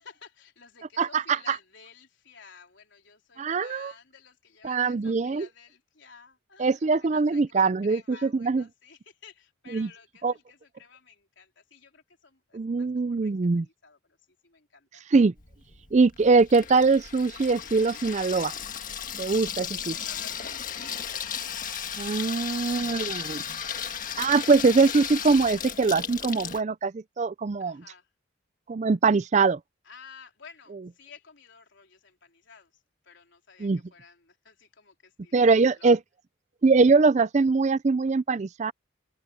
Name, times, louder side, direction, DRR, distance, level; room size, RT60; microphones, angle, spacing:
voice 1, 0.0-15.0 19.7-21.1 22.2-23.8 27.6-28.1 29.8-36.0, left 6 dB, 65° left, 3.9 m, -53 dB
voice 2, 1.0-1.6 3.4-3.9 4.6-5.5 6.6-8.6 9.7-9.9 10.2-10.3 12.5-13.7 15.1-15.3 15.9-18.5 19.2-19.9 22.0-23.4 24.2-27.8 28.7-29.6 33.6-33.8 35.3-36.0 36.6-38.7, right 4 dB, 35° right, 0.4 m, -22 dB
Water tap faucet / Sink (filling or washing), 15.4-26.6, left 8 dB, 40° left, 1.7 m, -35 dB
open air
head